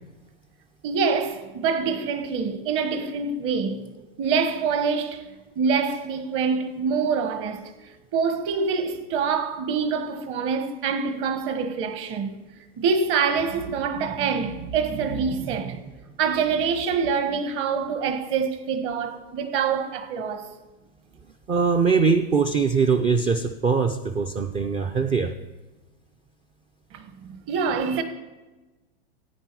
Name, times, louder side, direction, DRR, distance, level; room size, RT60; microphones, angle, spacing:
voice 1, 0.8-3.9 4.2-5.3 5.5-7.7 8.1-12.4 12.8-15.9 16.2-20.5 26.9-28.0, right 5 dB, 40° right, 1.5 m, -25 dB
voice 2, 21.5-25.3, right 5 dB, 20° right, 0.5 m, -22 dB
14.5 x 9.2 x 4.7 m
hypercardioid pair, 125°, 30 cm